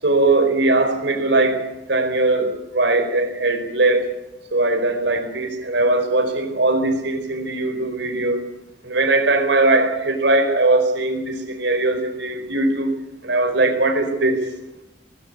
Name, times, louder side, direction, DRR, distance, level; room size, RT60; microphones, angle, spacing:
voice 1, 0.0-1.6 1.9-4.1 4.5-8.4 8.8-12.9 13.2-14.4, right 2 dB, 75° right, 5 dB, 4.7 m, -20 dB
20.0 x 16.5 x 9.6 m, 0.90 s
head